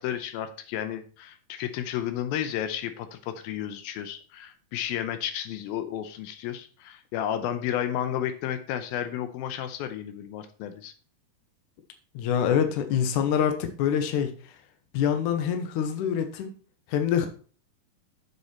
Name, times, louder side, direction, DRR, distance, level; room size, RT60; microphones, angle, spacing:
voice 1, 0.0-10.9, left 10 dB, 85° left, 9 dB, 2.6 m, -32 dB
voice 2, 12.1-14.3 14.9-16.5 16.9-17.3, left 8 dB, 70° left, 7 dB, 2.3 m, -25 dB
7.3 x 6.9 x 4.3 m, 0.40 s
omnidirectional pair, 4.2 m